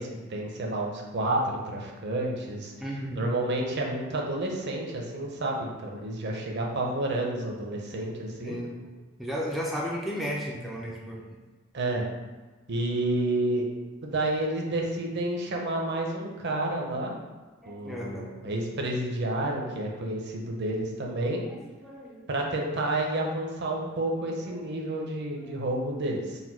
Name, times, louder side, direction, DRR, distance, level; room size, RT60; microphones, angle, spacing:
voice 1, 0.0-2.7 3.1-8.6 11.7-12.0 12.7-13.7 14.0-17.1 17.7-21.4 22.3-26.4, right 1 dB, 55° right, 0 dB, 0.7 m, -30 dB
voice 2, 2.8-3.2 7.9-8.1 8.4-8.8 9.2-11.3 17.6-18.3 21.2-22.3 24.2-24.6, equal, ahead, -4 dB, 0.4 m, -35 dB
4.0 x 2.2 x 4.4 m, 1.2 s
head